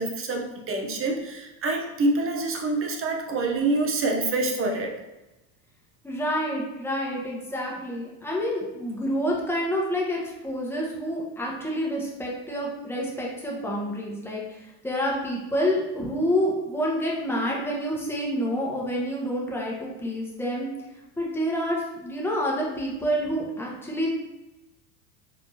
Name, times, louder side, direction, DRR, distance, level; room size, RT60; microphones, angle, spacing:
voice 1, 0.0-4.9, right 2 dB, 30° right, 2 dB, 0.8 m, -26 dB
voice 2, 6.0-20.7 21.2-24.1, equal, 5° left, -4 dB, 1.2 m, -28 dB
5.0 x 3.4 x 2.9 m, 1.0 s
supercardioid pair, 110°, 46 cm